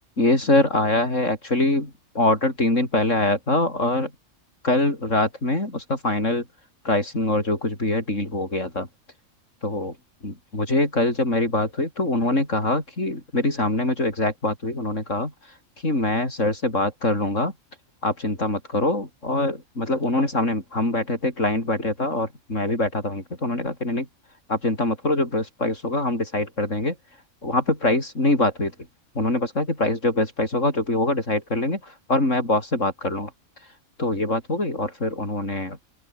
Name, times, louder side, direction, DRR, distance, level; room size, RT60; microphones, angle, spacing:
voice 1, 0.2-4.1 4.6-6.4 6.9-8.9 9.6-10.0 10.2-15.3 15.8-17.5 18.0-24.1 24.5-26.9 27.4-28.7 29.2-31.8 32.1-33.3 34.0-35.8, left 2 dB, 65° left, 7.0 m, -23 dB
open air
omnidirectional pair, 1.4 m